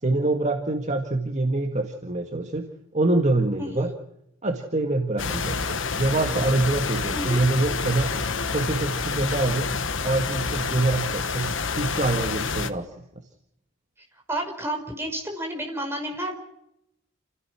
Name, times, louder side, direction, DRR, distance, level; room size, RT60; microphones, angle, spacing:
voice 1, 0.0-2.7 2.9-3.9 4.4-8.1 8.5-9.7 10.0-12.9, right 2 dB, 35° right, 3 dB, 1.9 m, -25 dB
Franklin Square-Fountain, 5.2-12.7, left 4 dB, 65° left, 1.3 m, -28 dB
voice 2, 14.3-16.4, right 1 dB, 10° right, 2 dB, 5.3 m, -30 dB
29.5 x 16.5 x 6.3 m, 0.80 s
head